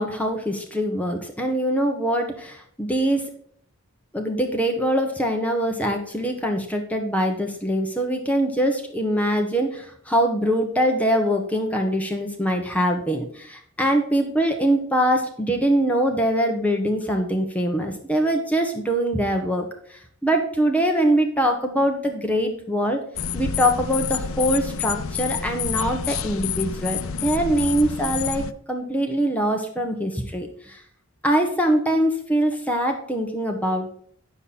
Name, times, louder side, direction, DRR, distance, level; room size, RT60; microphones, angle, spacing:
voice 1, 0.0-3.3 4.1-23.0 23.3-30.8 31.2-33.9, equal, 5° left, 3 dB, 1.0 m, -23 dB
sound 1, 23.1-28.5, left 7 dB, 80° left, 0.6 m, -28 dB
9.3 x 7.0 x 4.2 m, 0.62 s
head